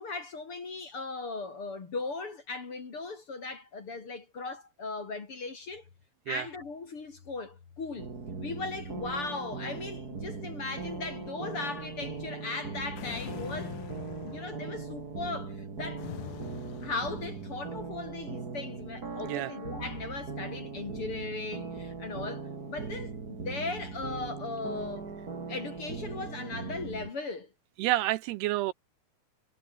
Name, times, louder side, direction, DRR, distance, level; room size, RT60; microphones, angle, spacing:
voice 1, 0.0-5.8 6.3-8.1 8.4-13.8 14.2-16.1 16.8-25.1 25.5-27.5, left 3 dB, 35° left, 3.1 m, -38 dB
sound 1, 8.0-27.1, right 4 dB, 25° right, 2.5 m, -39 dB
sound 2, 13.0-14.8 16.0-17.8, left 14 dB, 70° left, 2.8 m, -44 dB
voice 2, 19.2-19.5 27.8-28.7, right 16 dB, 80° right, 2.5 m, -29 dB
omnidirectional pair, 5.0 m